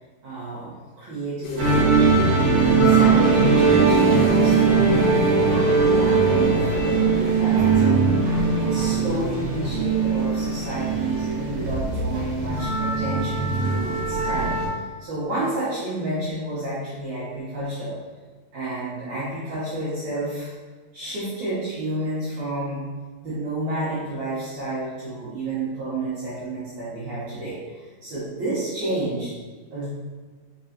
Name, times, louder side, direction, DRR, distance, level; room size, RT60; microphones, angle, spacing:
voice 1, 0.2-2.3 2.8-8.0 8.5-14.6 15.0-17.9 18.5-20.5 20.9-22.8 23.2-29.3 29.7-29.9, right 2 dB, 80° right, -11 dB, 1.7 m, -30 dB
sound 1, 1.4-6.6, left 2 dB, 80° left, 2.5 m, -34 dB
sound 2, 1.6-14.7, right 4 dB, 55° right, 2.3 m, -20 dB
6.0 x 3.0 x 2.8 m, 1.4 s
omnidirectional pair, 4.8 m